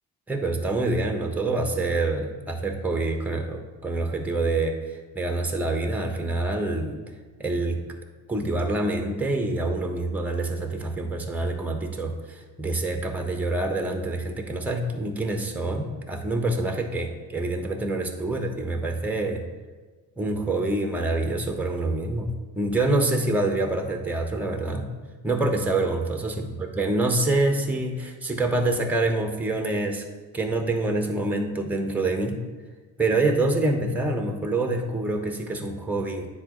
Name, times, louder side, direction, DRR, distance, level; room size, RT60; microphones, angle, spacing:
voice 1, 0.3-4.7 5.1-7.0 7.4-7.8 8.3-19.4 20.2-22.3 22.5-24.9 25.2-30.0 30.3-32.4 33.0-36.3, right 2 dB, 5° right, 3 dB, 1.1 m, -26 dB
9.7 x 4.2 x 3.1 m, 1.4 s
hypercardioid pair, 45°, 48 cm